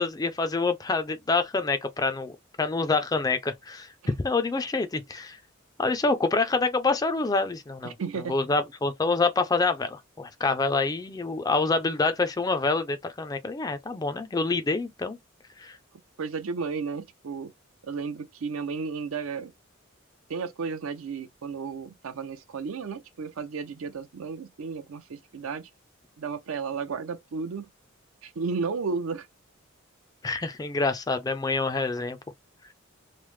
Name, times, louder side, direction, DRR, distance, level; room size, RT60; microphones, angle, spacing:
voice 1, 0.0-3.9 4.2-5.4 5.8-7.9 8.3-15.2 15.6-15.8 30.2-32.2, left 3 dB, 20° left, 0.3 m, -26 dB
voice 2, 7.8-8.4 16.2-17.5 17.8-19.5 20.3-25.7 26.2-27.7 28.2-29.3, right 5 dB, 75° right, 0.5 m, -33 dB
3.1 x 2.0 x 3.0 m
head